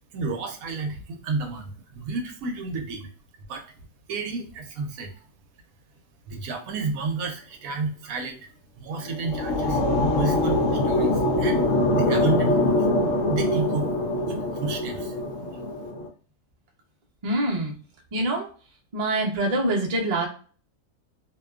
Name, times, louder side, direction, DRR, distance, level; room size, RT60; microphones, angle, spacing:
voice 1, 0.1-3.1 3.5-3.6 4.1-5.1 6.3-8.4 8.8-9.8 10.2-10.6 10.8-12.8 13.3-13.9 14.3-15.1, right 3 dB, 70° right, 5 dB, 0.9 m, -30 dB
sound 1, 8.9-16.1, left 1 dB, 65° left, 0.9 m, -24 dB
voice 2, 17.2-17.7 18.1-18.5 18.9-20.3, right 1 dB, 90° right, -1 dB, 0.3 m, -25 dB
2.7 x 2.2 x 2.2 m, 0.39 s
omnidirectional pair, 1.7 m